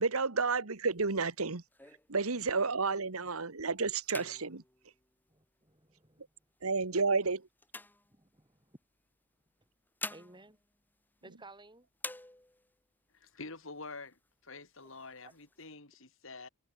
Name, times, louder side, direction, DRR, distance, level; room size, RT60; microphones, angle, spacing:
voice 1, 0.0-1.6 2.1-4.6 6.6-7.5, right 4 dB, 85° right, 1.5 m, -31 dB
sound 1, 0.7-2.9 3.4-3.6 4.0-5.9 6.6-8.7 9.6-11.6 11.9-12.8 13.3-13.4 13.6-14.3 14.8-15.7, left 2 dB, 10° left, 2.5 m, -48 dB
voice 2, 5.3-6.2 8.1-8.8 10.1-10.6 11.2-11.9 15.2-15.3, right 2 dB, 20° right, 6.7 m, -56 dB
voice 3, 13.1-16.5, left 3 dB, 65° left, 4.5 m, -47 dB
head